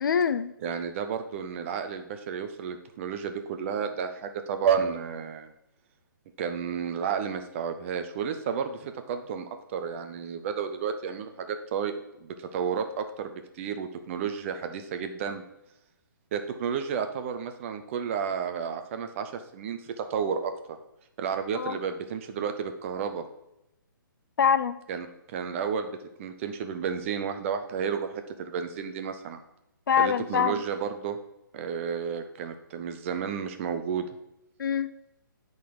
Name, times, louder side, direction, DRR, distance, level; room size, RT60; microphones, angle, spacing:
voice 1, 0.0-0.5 21.5-21.8 24.4-24.8 29.9-30.6 34.6-34.9, left 7 dB, 65° left, 13 dB, 0.5 m, -24 dB
voice 2, 0.6-5.5 6.4-11.9 12.2-15.4 16.3-20.5 21.2-23.2 24.9-29.4 30.0-31.2 31.5-34.1, right 7 dB, 35° right, 7 dB, 0.8 m, -32 dB
9.2 x 4.0 x 4.9 m, 0.87 s
hypercardioid pair, 145°, 11 cm